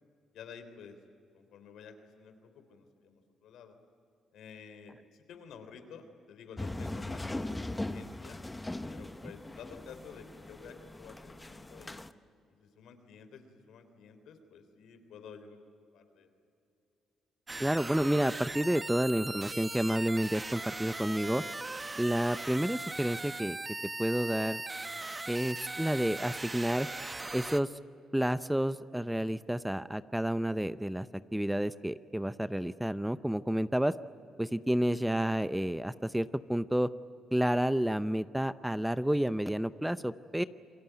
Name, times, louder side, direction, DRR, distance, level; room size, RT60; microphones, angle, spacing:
voice 1, 0.3-1.0 1.3-3.7 4.3-8.4 8.9-12.0 12.6-15.6 15.9-16.3, left 6 dB, 80° left, 8 dB, 3.4 m, -51 dB
sound 1, 6.6-12.1, left 2 dB, 15° left, 1.0 m, -40 dB
sound 2, 17.5-27.6, right 2 dB, 20° right, 1.0 m, -39 dB
voice 2, 17.6-21.4 22.0-23.6 24.0-24.6 25.3-26.9 27.3-27.7 28.1-31.1 31.3-33.9 34.4-36.9 37.3-40.4, right 1 dB, 5° right, 14 dB, 0.6 m, -30 dB
28.5 x 22.0 x 9.2 m, 2.6 s
cardioid pair, 90°, 0 cm